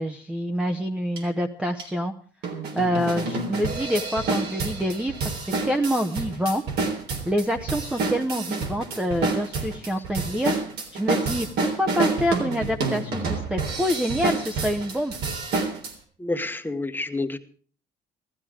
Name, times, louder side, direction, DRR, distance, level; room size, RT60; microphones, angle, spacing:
voice 1, 0.0-2.1 2.7-5.1 5.6-6.6 7.2-10.5 10.9-11.5 11.7-15.2, equal, 5° right, 5 dB, 0.8 m, -26 dB
sound 1, 1.2-1.3 1.8-1.9 2.4-15.9, right 3 dB, 75° right, 3.6 m, -28 dB
voice 2, 16.2-17.4, left 2 dB, 10° left, 7 dB, 1.2 m, -28 dB
15.5 x 13.0 x 5.0 m, 0.44 s
cardioid pair, 110°, 17 cm